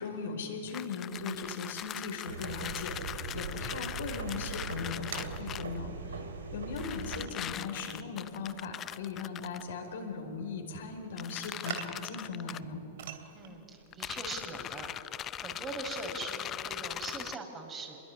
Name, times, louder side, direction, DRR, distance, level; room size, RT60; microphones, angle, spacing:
voice 1, 0.0-12.8, left 5 dB, 70° left, 3 dB, 5.0 m, -39 dB
sound 1, 0.7-5.8 6.8-9.6 11.2-12.6 13.9-17.4, left 11 dB, 30° left, 0.6 m, -41 dB
sound 2, 1.1-15.2, right 8 dB, 65° right, 2.7 m, -49 dB
sound 3, 2.3-7.3, right 4 dB, 85° right, 3.2 m, -41 dB
voice 2, 13.3-14.9 15.4-18.0, right 3 dB, 25° right, 2 dB, 5.8 m, -41 dB
26.0 x 21.5 x 9.9 m, 2.9 s
hypercardioid pair, 110°, 0 cm